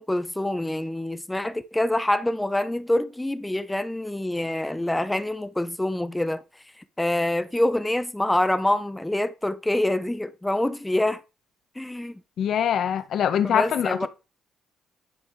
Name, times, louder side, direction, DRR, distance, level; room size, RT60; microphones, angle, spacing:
voice 1, 0.0-6.4 6.8-11.2 11.7-12.2 13.4-14.1, left 1 dB, 10° left, 1.0 m, -26 dB
voice 2, 12.4-14.1, left 9 dB, 65° left, 1.5 m, -23 dB
13.0 x 5.5 x 4.9 m
cardioid pair, 90°, 0 cm